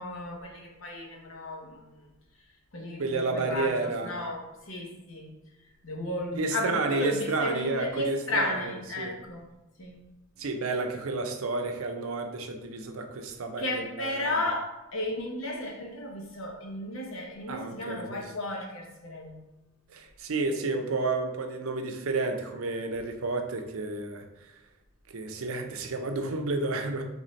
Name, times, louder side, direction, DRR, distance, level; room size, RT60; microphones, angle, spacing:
voice 1, 0.0-2.0 2.7-5.3 5.8-9.5 9.8-10.0 13.6-19.4, left 1 dB, 65° left, 0 dB, 0.9 m, -34 dB
voice 2, 3.0-4.2 6.3-9.2 10.4-14.4 17.5-18.3 19.9-24.5 25.1-27.0, right 3 dB, 75° right, 5 dB, 0.6 m, -31 dB
4.0 x 3.5 x 3.1 m, 1.0 s
head